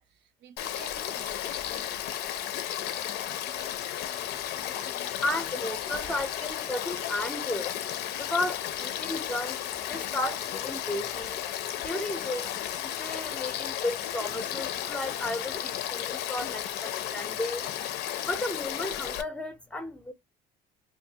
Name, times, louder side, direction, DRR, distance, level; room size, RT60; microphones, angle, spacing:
voice 1, 0.0-1.7 3.4-4.4 5.8-6.4 11.9-12.6, right 8 dB, 80° right, 0.6 m, -53 dB
Frog / Stream, 0.6-19.2, left 11 dB, 85° left, 0.5 m, -34 dB
voice 2, 5.2-7.7 8.2-9.6 9.9-11.4 11.8-12.5 12.8-17.6 18.3-20.1, left 2 dB, 5° left, 0.5 m, -33 dB
2.6 x 2.2 x 2.7 m
cardioid pair, 110°, 17 cm